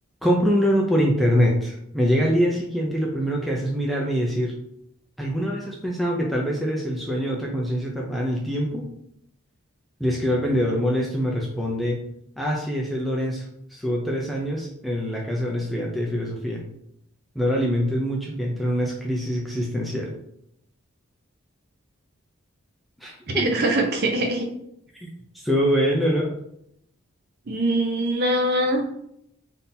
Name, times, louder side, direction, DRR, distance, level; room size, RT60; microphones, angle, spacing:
voice 1, 0.2-4.5 5.2-8.9 10.0-12.0 12.4-13.5 13.7-16.6 17.4-20.1 23.0-23.4 24.9-25.1 25.3-26.3, equal, ahead, -2 dB, 0.4 m, -24 dB
voice 2, 23.3-24.5 27.5-28.8, right 1 dB, 45° right, 3 dB, 0.6 m, -22 dB
3.7 x 2.7 x 2.7 m, 0.74 s
head